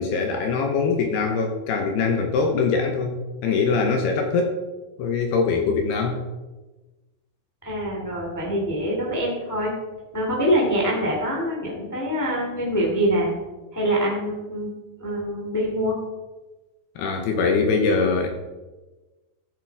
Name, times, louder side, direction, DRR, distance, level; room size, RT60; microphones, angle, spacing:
voice 1, 0.0-4.6 5.0-6.2 17.0-18.3, left 4 dB, 75° left, 4 dB, 2.7 m, -23 dB
voice 2, 7.6-9.7 10.1-13.3 13.7-14.7 15.0-16.0, equal, 15° left, -2 dB, 0.6 m, -24 dB
15.0 x 7.6 x 4.8 m, 1.2 s
omnidirectional pair, 5.4 m